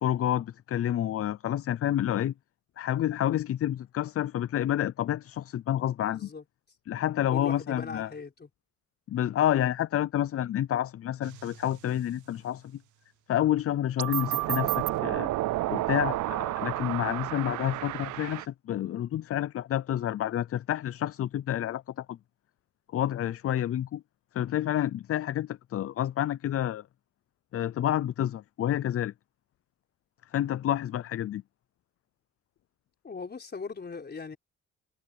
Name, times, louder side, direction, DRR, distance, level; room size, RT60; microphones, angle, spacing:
voice 1, 0.0-2.3 2.8-6.3 6.9-8.1 9.1-12.8 13.3-15.3 15.7-22.2 22.9-24.0 24.3-26.8 27.5-29.1 30.3-31.4, left 11 dB, 50° left, 0.5 m, -29 dB
voice 2, 6.0-6.4 7.3-8.5 33.0-34.4, left 5 dB, 35° left, 4.5 m, -39 dB
sound 1, 11.2-11.5 14.0-18.5, right 17 dB, 75° right, 0.6 m, -30 dB
cardioid pair, 90°, 30 cm